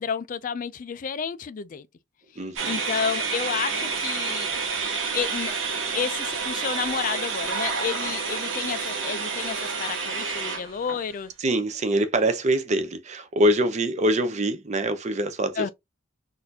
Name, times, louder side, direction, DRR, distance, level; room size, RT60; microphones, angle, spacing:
voice 1, 0.0-1.9 2.6-4.5 5.1-5.5 5.9-11.3 15.6-15.7, left 6 dB, 40° left, 0.3 m, -30 dB
voice 2, 2.4-2.8 11.4-15.7, right 1 dB, 35° right, 0.6 m, -24 dB
sound 1, 2.6-11.1, right 5 dB, 65° right, 1.1 m, -29 dB
4.0 x 2.6 x 2.7 m
head